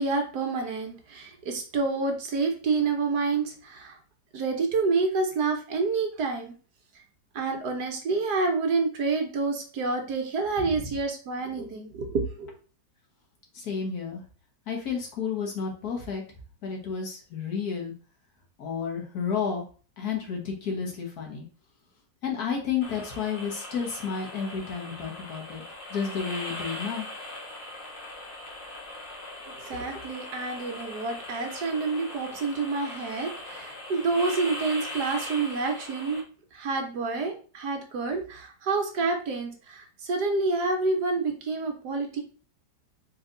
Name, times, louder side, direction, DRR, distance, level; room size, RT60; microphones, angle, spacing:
voice 1, 0.0-4.0 4.3-6.5 7.3-12.5 29.6-36.2 36.5-42.2, right 4 dB, 65° right, 3 dB, 1.4 m, -28 dB
voice 2, 13.5-14.2 14.7-16.2 16.6-17.9 18.6-19.6 20.0-21.4 22.2-25.6 25.9-27.1, left 6 dB, 60° left, 0 dB, 1.6 m, -31 dB
sound 1, 22.8-36.2, left 1 dB, 80° left, 2.2 m, -40 dB
4.5 x 3.1 x 3.8 m, 0.38 s
omnidirectional pair, 1.9 m